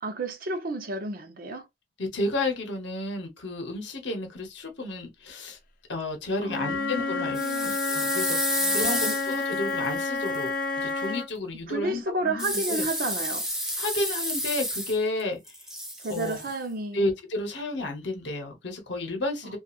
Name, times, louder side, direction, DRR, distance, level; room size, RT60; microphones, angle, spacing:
voice 1, 0.0-1.7 6.4-7.8 8.6-9.2 11.7-13.5 16.0-17.0 19.4-19.6, right 2 dB, 45° right, 0.5 m, -32 dB
voice 2, 2.0-5.6 5.9-12.9 13.8-15.4 16.1-16.4 16.9-19.6, left 2 dB, 65° left, 0.8 m, -32 dB
Wind instrument woodwind instrument, 6.5-11.3, left 3 dB, 45° left, 0.4 m, -29 dB
sound 1, 7.3-10.4 12.4-15.2 15.5-16.5, equal, 5° right, 0.6 m, -30 dB
2.8 x 2.4 x 2.3 m
head